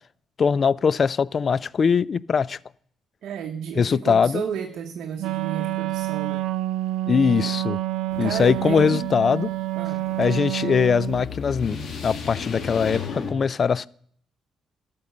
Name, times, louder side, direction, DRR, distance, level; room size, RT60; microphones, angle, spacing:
voice 1, 0.4-2.6 3.8-4.4 7.1-7.8 8.2-9.5 10.2-11.8 12.0-13.9, left 6 dB, 45° left, 23 dB, 0.3 m, -21 dB
voice 2, 3.2-6.5 8.2-9.1 9.8-10.0, right 7 dB, 70° right, 4 dB, 0.9 m, -32 dB
Wind instrument woodwind instrument, 5.2-11.3, right 17 dB, 90° right, 0.4 m, -28 dB
sound 1, 8.1-13.3, left 5 dB, 60° left, 1.9 m, -36 dB
13.0 x 5.3 x 6.8 m, 0.63 s
cardioid pair, 90°, 0 cm